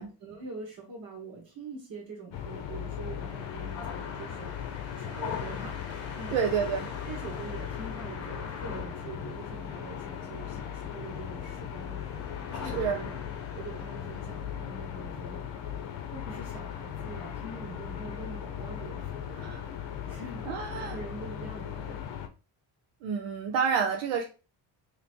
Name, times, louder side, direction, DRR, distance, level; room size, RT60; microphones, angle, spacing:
voice 1, 0.0-6.4 7.0-13.2 13.5-15.4 16.1-19.5 20.0-22.1, right 3 dB, 50° right, -2 dB, 1.3 m, -44 dB
sound 1, 2.3-22.3, left 9 dB, 65° left, 0.7 m, -38 dB
sound 2, 2.5-22.0, left 5 dB, 35° left, 0.9 m, -45 dB
voice 2, 6.3-6.9 12.7-13.0 19.4-19.6 20.5-21.0 23.0-24.2, right 6 dB, 85° right, 2 dB, 0.7 m, -29 dB
3.0 x 2.7 x 4.4 m, 0.33 s
cardioid pair, 145°, 46 cm